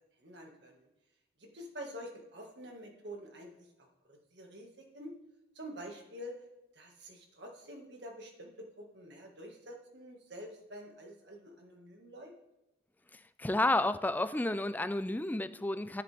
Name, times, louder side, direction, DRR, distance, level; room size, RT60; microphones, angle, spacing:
voice 1, 0.2-0.9 1.4-5.2 5.5-6.4 6.7-12.3, equal, 65° right, 1 dB, 1.9 m, -48 dB
voice 2, 13.1-16.0, left 2 dB, 10° left, 12 dB, 0.4 m, -31 dB
10.5 x 10.5 x 3.5 m, 0.98 s
head